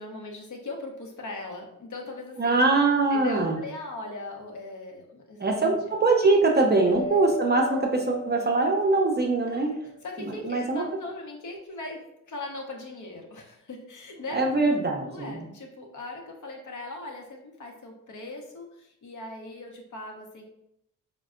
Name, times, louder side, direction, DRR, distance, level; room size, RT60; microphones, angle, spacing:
voice 1, 0.0-2.6 3.1-5.8 6.8-7.4 7.8-7.9 9.5-9.7 10.0-14.5 15.0-20.4, left 2 dB, 50° left, 1 dB, 0.8 m, -39 dB
voice 2, 2.4-3.6 5.4-9.7 10.2-10.8 14.3-15.4, right 3 dB, 25° right, 1 dB, 0.6 m, -23 dB
sound 1, 6.9-9.9, left 2 dB, 90° left, 0.8 m, -36 dB
4.0 x 2.1 x 2.4 m, 0.78 s
supercardioid pair, 50°, 38 cm